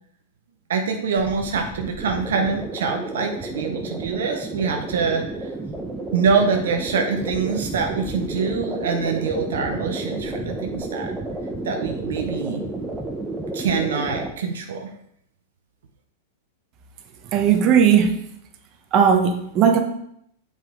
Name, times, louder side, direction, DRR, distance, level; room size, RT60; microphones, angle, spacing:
voice 1, 0.7-5.5 6.1-11.1 11.6-12.7 13.5-14.9, right 5 dB, 75° right, 4 dB, 0.8 m, -25 dB
sound 1, 1.2-14.3, right 2 dB, 15° right, 0.9 m, -31 dB
voice 2, 17.3-18.1 18.9-19.8, right 7 dB, 40° right, 5 dB, 1.0 m, -16 dB
7.3 x 5.1 x 3.7 m, 0.72 s
hypercardioid pair, 105°, 0 cm